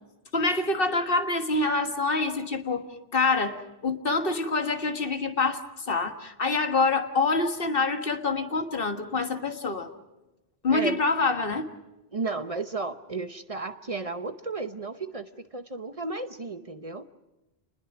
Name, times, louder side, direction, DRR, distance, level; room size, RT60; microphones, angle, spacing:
voice 1, 0.3-2.9 3.1-9.9 10.6-11.6, left 3 dB, 60° left, 7 dB, 1.7 m, -26 dB
voice 2, 12.1-17.1, right 3 dB, 35° right, 10 dB, 0.9 m, -33 dB
28.5 x 20.5 x 6.0 m, 1.0 s
omnidirectional pair, 1.1 m